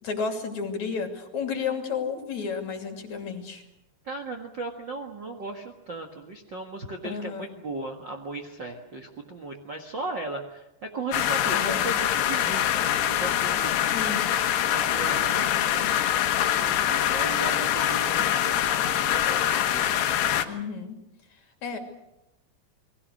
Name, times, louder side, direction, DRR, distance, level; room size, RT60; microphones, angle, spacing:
voice 1, 0.0-3.6 7.0-7.5 11.4-11.9 13.9-14.2 20.5-21.0 21.6-21.8, left 5 dB, 45° left, 4 dB, 3.7 m, -32 dB
voice 2, 4.0-14.1 14.7-15.9 16.6-20.0, right 2 dB, 85° right, 3 dB, 1.0 m, -37 dB
sound 1, 11.1-20.5, left 11 dB, 75° left, 3.3 m, -24 dB
29.5 x 21.0 x 6.5 m, 0.93 s
omnidirectional pair, 5.0 m